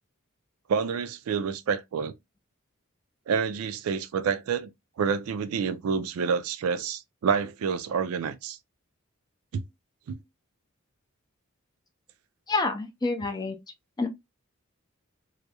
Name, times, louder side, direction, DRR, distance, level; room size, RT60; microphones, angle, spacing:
voice 1, 0.7-2.1 3.3-4.7 5.0-8.6 9.5-9.6 10.1-10.2, right 6 dB, 85° right, 0.3 m, -28 dB
voice 2, 12.5-13.6 14.0-14.1, left 3 dB, 20° left, 0.4 m, -28 dB
2.3 x 2.0 x 2.7 m
head